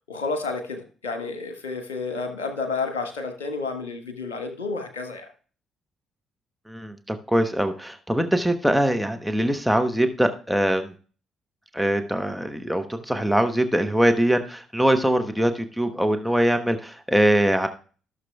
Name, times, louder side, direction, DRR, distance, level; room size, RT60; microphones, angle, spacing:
voice 1, 0.1-5.3, left 4 dB, 80° left, 6 dB, 1.2 m, -30 dB
voice 2, 6.7-10.9 11.7-17.7, right 1 dB, ahead, 5 dB, 1.1 m, -22 dB
15.5 x 6.5 x 2.3 m, 0.39 s
figure-of-eight pair, 45°, 0 cm